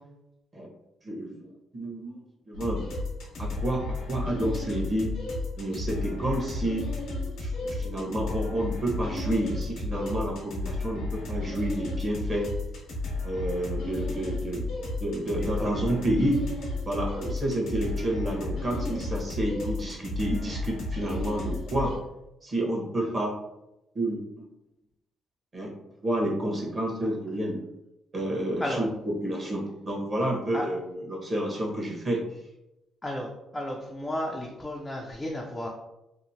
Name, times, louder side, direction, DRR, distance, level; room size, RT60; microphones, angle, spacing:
voice 1, 1.0-2.8 3.4-3.8 4.1-5.1 5.6-6.8 7.4-12.5 13.2-14.6 15.0-16.4 16.9-21.9 22.4-23.3 23.9-24.5 25.5-25.7 26.0-27.6 28.1-28.9 29.2-30.8 31.1-32.2, right 1 dB, 35° right, -2 dB, 1.0 m, -29 dB
sound 1, 2.5-22.0, left 2 dB, 85° left, 0.9 m, -33 dB
voice 2, 15.2-15.9 23.0-23.1 28.6-28.9 30.5-30.7 33.0-35.7, left 1 dB, 15° left, -2 dB, 0.4 m, -34 dB
2.9 x 2.1 x 2.7 m, 0.89 s
cardioid pair, 90°, 0 cm